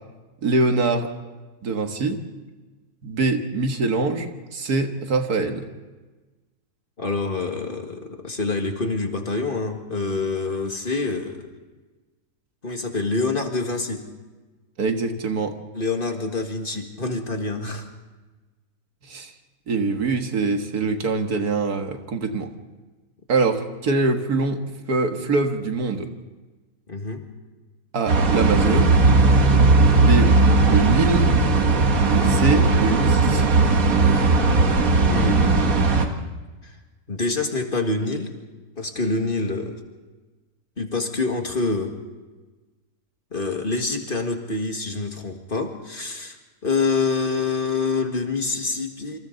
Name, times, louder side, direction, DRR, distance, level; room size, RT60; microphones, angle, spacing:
voice 1, 0.4-1.1 1.6-2.2 3.0-5.7 14.8-15.6 19.1-19.3 19.7-22.5 23.3-24.6 24.9-26.1 27.9-29.0 29.9-30.3 30.7-31.3 32.1-33.7, right 3 dB, 85° right, 5 dB, 2.1 m, -23 dB
voice 2, 7.0-11.5 12.6-14.1 15.7-17.9 26.9-27.2 29.7-30.1 35.0-35.6 37.1-38.3 38.8-39.8 40.8-41.9 43.3-46.4 46.6-49.2, left 3 dB, 35° left, 4 dB, 2.1 m, -26 dB
sound 1, 28.1-36.1, right 3 dB, 65° right, 2.0 m, -17 dB
27.5 x 26.0 x 4.0 m, 1.2 s
omnidirectional pair, 1.6 m